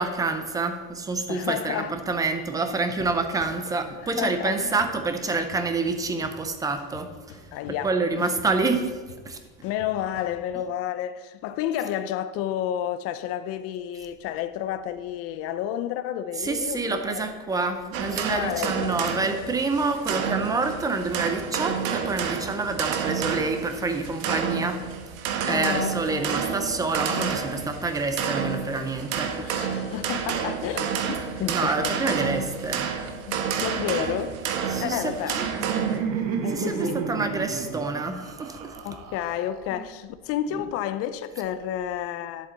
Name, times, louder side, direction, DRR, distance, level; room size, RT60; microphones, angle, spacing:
voice 1, 0.0-7.4 7.8-9.0 9.2-9.4 16.4-24.8 25.5-29.3 31.5-32.9 34.7-35.4 36.5-38.8 39.8-39.9, right 3 dB, 10° right, 0.5 m, -27 dB
voice 2, 1.3-2.0 4.0-4.7 7.5-8.3 9.6-17.3 18.3-19.2 25.5-26.4 29.4-32.2 33.3-34.4 34.8-35.7 36.4-37.0 38.8-42.5, left 11 dB, 40° left, 0.5 m, -31 dB
sound 1, 4.8-4.9 5.3-6.3 6.8-7.9 8.2-10.4, left 6 dB, 70° left, 1.9 m, -47 dB
sound 2, 17.9-36.0, right 7 dB, 90° right, 1.2 m, -30 dB
Laughter, 34.9-39.8, right 6 dB, 55° right, 1.2 m, -32 dB
10.5 x 7.6 x 3.9 m
supercardioid pair, 155°, 39 cm